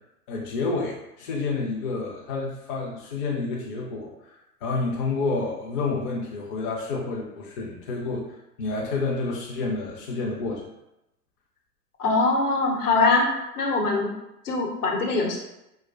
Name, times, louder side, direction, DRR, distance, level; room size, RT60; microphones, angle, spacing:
voice 1, 0.3-4.1 4.6-8.3 8.6-10.6, left 3 dB, 35° left, -2 dB, 0.6 m, -29 dB
voice 2, 12.0-13.3 13.6-14.1 14.4-15.4, left 3 dB, 65° left, -1 dB, 1.0 m, -22 dB
4.5 x 2.2 x 2.3 m, 0.90 s
figure-of-eight pair, 100°, 49 cm